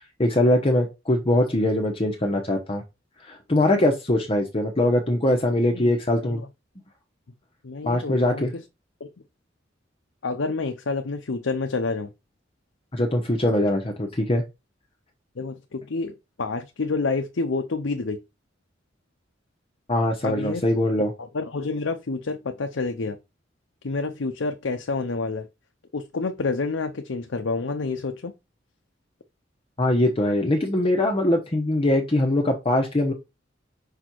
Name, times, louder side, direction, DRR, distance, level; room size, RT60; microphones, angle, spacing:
voice 1, 0.2-2.8 3.3-6.4 7.8-8.5 12.9-14.4 19.9-21.1 29.8-33.1, left 1 dB, 30° left, 1.0 m, -22 dB
voice 2, 7.6-8.6 9.0-9.1 10.2-12.1 15.4-18.2 20.2-20.6 21.2-23.2 23.8-25.5 25.9-28.3, left 3 dB, 85° left, 0.7 m, -28 dB
5.7 x 4.3 x 4.5 m
head